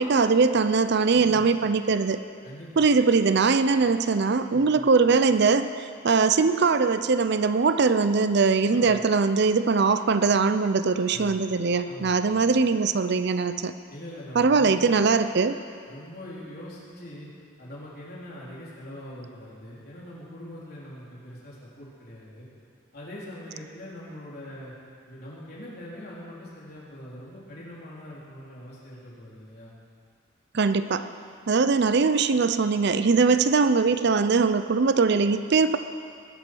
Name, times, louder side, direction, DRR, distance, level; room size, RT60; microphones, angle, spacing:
voice 1, 0.0-2.2 2.8-13.7 14.4-15.6 30.5-31.1 31.5-35.8, right 4 dB, 50° right, 11 dB, 0.5 m, -21 dB
voice 2, 1.1-1.5 2.4-2.9 4.5-4.9 8.6-9.0 11.1-11.5 11.9-12.3 13.9-14.8 15.9-17.3 17.6-22.5 22.9-24.7 25.1-29.7, left 1 dB, 45° left, -7 dB, 4.0 m, -42 dB
20.0 x 8.4 x 6.3 m, 2.2 s
head